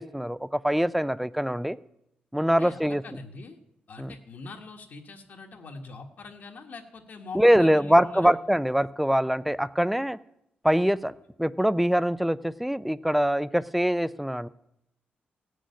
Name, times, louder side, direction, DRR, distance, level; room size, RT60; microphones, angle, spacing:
voice 1, 0.0-1.8 2.3-3.0 4.0-4.1 7.3-10.2 10.6-11.1 11.4-14.5, equal, ahead, 17 dB, 0.4 m, -23 dB
voice 2, 2.5-3.6 3.9-8.3, left 3 dB, 60° left, 2 dB, 1.6 m, -43 dB
16.5 x 6.4 x 9.5 m, 0.81 s
wide cardioid pair, 125°, 4 cm